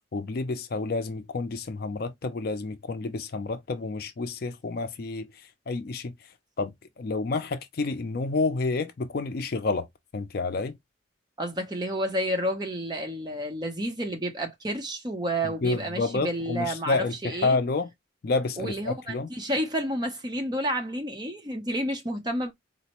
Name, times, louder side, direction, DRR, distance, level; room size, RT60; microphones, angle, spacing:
voice 1, 0.1-6.1 6.6-9.9 10.1-10.8 15.4-17.9 18.2-19.3, left 3 dB, 50° left, 0.4 m, -29 dB
voice 2, 11.4-17.0 17.2-17.6 18.6-22.5, right 1 dB, 20° right, 0.7 m, -30 dB
4.0 x 2.1 x 2.9 m
head